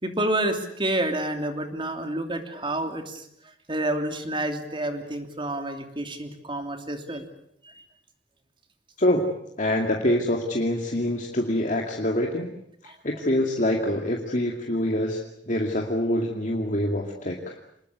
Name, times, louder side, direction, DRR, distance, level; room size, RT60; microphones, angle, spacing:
voice 1, 0.0-3.2 3.7-7.3 7.6-7.7 12.8-12.9, right 1 dB, 30° right, 6 dB, 3.1 m, -29 dB
voice 2, 9.0-9.3 9.6-12.5 12.8-15.2 15.5-17.5, left 1 dB, 45° left, 1 dB, 2.4 m, -25 dB
26.5 x 20.5 x 8.2 m, 0.74 s
head